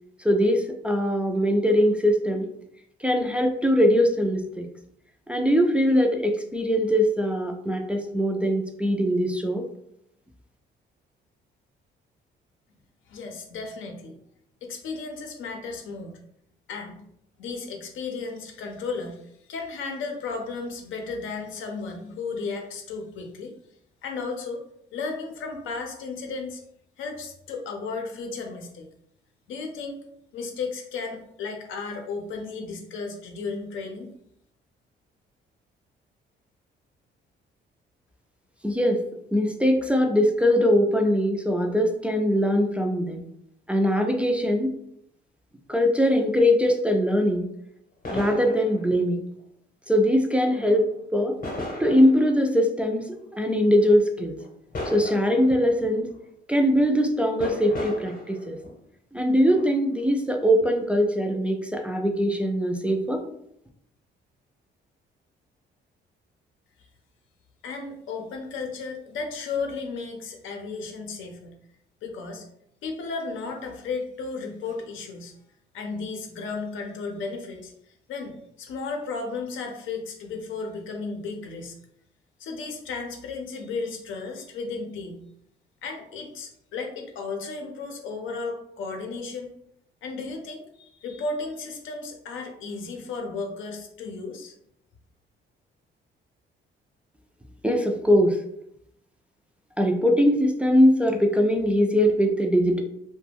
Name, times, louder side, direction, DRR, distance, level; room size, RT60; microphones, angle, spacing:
voice 1, 0.2-2.5 3.0-4.7 5.3-9.6 38.6-39.0 39.3-43.3 43.7-44.8 45.7-47.5 48.1-49.2 49.9-51.4 51.8-54.4 54.9-56.1 56.5-58.6 59.1-63.2 97.6-98.4 99.8-102.8, equal, 5° right, 2 dB, 0.3 m, -22 dB
voice 2, 13.1-14.2 14.6-16.1 16.7-17.0 17.4-23.5 24.0-24.6 24.9-26.6 27.0-28.9 29.5-30.0 30.3-34.1 67.6-71.6 72.0-72.4 72.8-75.3 75.7-77.7 78.1-81.8 82.4-85.3 85.8-89.5 90.0-94.5, left 4 dB, 80° left, 3 dB, 0.6 m, -34 dB
sound 1, 48.0-49.0 50.5-51.0 51.4-52.3 52.8-52.9 54.4-56.0 56.7-57.0 57.4-58.8 59.4-60.1 60.6-60.7, left 1 dB, 45° left, 0.8 m, -36 dB
2.3 x 2.1 x 3.3 m, 0.74 s
cardioid pair, 90°, 20 cm